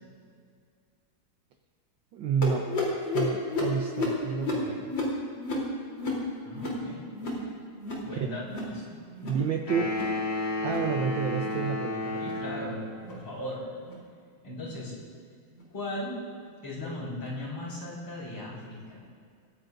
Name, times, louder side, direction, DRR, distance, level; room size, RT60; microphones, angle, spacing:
voice 1, 2.1-2.7 3.0-4.9 9.2-10.0 10.6-12.3, right 6 dB, 70° right, 3 dB, 1.5 m, -30 dB
sound 1, 2.4-7.5 7.7-8.1 8.4-8.8 9.1-9.5 9.8-10.2 10.6-10.9 11.4-11.7 12.2-12.4 13.0-13.2 13.8-14.0 14.7-14.8 15.6-15.7, left 2 dB, 60° left, 4.1 m, -32 dB
voice 2, 6.5-7.1 8.0-9.0 12.2-13.7 14.4-14.9 15.7-16.2 16.6-19.0, left 1 dB, 85° left, -5 dB, 5.9 m, -38 dB
sound 2, 9.7-13.0, left 2 dB, 35° left, 3.5 m, -32 dB
28.5 x 15.0 x 2.6 m, 2.2 s
omnidirectional pair, 2.3 m